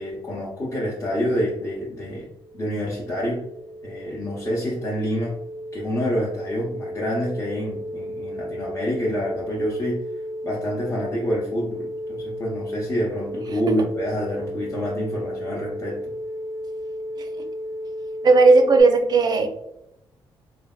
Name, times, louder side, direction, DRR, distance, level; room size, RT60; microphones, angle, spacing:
voice 1, 0.0-2.3 2.5-3.4 3.8-5.4 5.7-10.0 10.4-16.0, equal, 30° left, -5 dB, 0.6 m, -27 dB
sound 1, 1.9-18.8, equal, 80° left, 0.6 m, -34 dB
voice 2, 18.2-19.5, right 3 dB, 45° right, 6 dB, 0.4 m, -15 dB
3.2 x 2.1 x 2.3 m, 0.82 s
cardioid pair, 80°, 9 cm